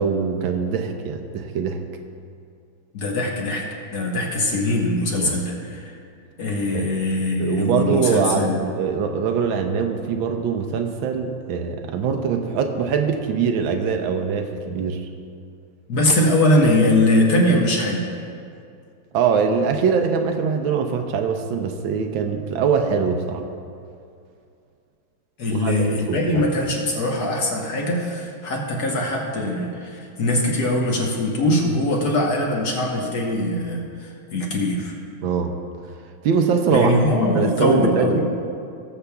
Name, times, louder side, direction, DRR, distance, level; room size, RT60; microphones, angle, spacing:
voice 1, 0.0-1.8 5.1-5.4 6.7-7.0 7.4-8.5 8.8-15.1 19.1-23.4 25.5-25.7 26.1-26.5 35.2-35.5 36.2-36.9 37.3-38.2, right 6 dB, 80° right, 5 dB, 1.4 m, -22 dB
voice 2, 2.9-5.9 6.4-8.7 15.9-18.1 25.4-34.9 36.7-38.2, left 1 dB, 55° left, -1 dB, 1.5 m, -21 dB
19.0 x 6.9 x 2.3 m, 2.4 s
omnidirectional pair, 2.2 m